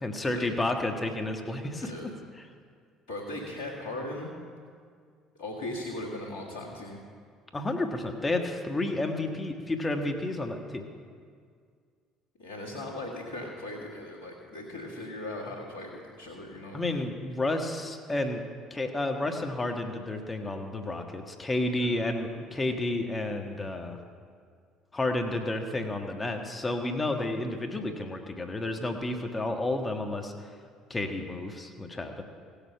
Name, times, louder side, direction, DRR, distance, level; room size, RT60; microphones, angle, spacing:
voice 1, 0.0-2.1 7.5-10.8 16.7-18.4 18.7-24.0 24.9-30.3 30.9-32.2, left 2 dB, 25° left, 4 dB, 1.5 m, -31 dB
voice 2, 1.8-2.1 3.1-4.3 5.4-7.0 12.4-16.8 21.8-22.0, left 1 dB, 80° left, -7 dB, 2.1 m, -38 dB
16.5 x 7.0 x 5.7 m, 2.1 s
hypercardioid pair, 60°, 0 cm